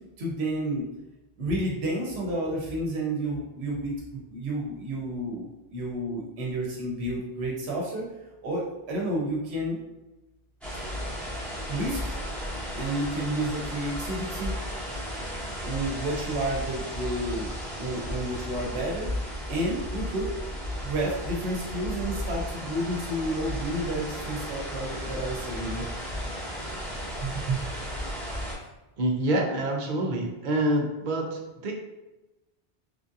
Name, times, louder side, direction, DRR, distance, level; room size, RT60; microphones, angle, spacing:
voice 1, 0.2-0.9 1.4-8.0 8.4-9.8 11.7-12.1 12.7-14.6 15.6-19.1 19.5-20.3 20.8-25.8 27.2-27.6, right 1 dB, 85° right, -3 dB, 0.9 m, -30 dB
sound 1, 10.6-28.5, equal, ahead, 1.0 m, -34 dB
voice 2, 29.0-31.7, right 1 dB, 55° right, 1 dB, 0.6 m, -27 dB
3.2 x 2.5 x 2.5 m, 1.0 s
omnidirectional pair, 1.1 m